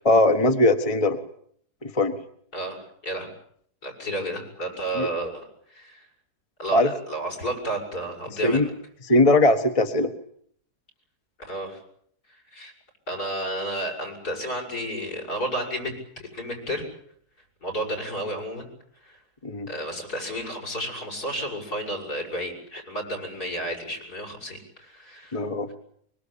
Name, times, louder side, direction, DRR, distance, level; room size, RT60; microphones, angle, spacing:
voice 1, 0.0-1.2 1.8-2.2 4.9-5.1 6.7-6.9 8.4-8.7 9.0-10.1 19.4-19.7 25.3-25.7, left 1 dB, 20° left, 6 dB, 1.7 m, -20 dB
voice 2, 2.5-3.3 3.8-6.0 6.6-8.7 11.5-11.8 12.5-12.7 13.1-16.8 17.6-18.7 19.0-19.2 19.7-25.4, right 1 dB, 70° left, 4 dB, 8.2 m, -32 dB
24.0 x 23.5 x 8.9 m, 0.65 s
omnidirectional pair, 1.7 m